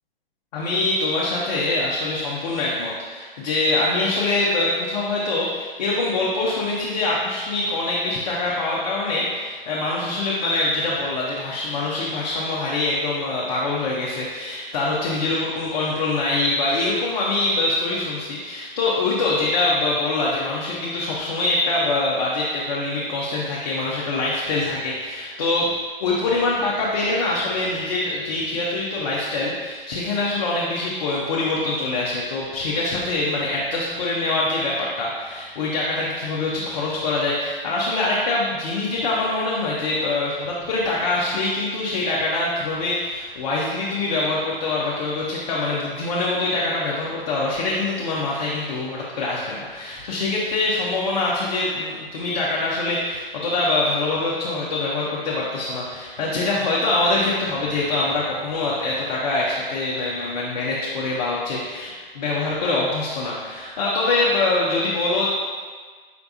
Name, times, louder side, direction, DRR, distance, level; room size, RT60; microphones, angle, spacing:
voice 1, 0.5-25.7 26.0-65.3, left 2 dB, 45° left, -5 dB, 0.7 m, -24 dB
5.0 x 3.3 x 2.6 m, 1.5 s
figure-of-eight pair, 125°, 29 cm